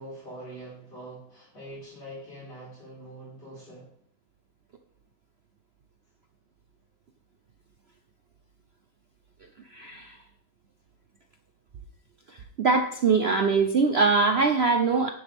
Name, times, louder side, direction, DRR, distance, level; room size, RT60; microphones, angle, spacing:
voice 1, 0.0-3.9, right 1 dB, 65° left, -8 dB, 5.9 m, -43 dB
voice 2, 9.7-10.2 12.6-15.1, right 4 dB, 55° right, 6 dB, 0.7 m, -22 dB
11.5 x 10.0 x 3.5 m, 0.63 s
omnidirectional pair, 1.9 m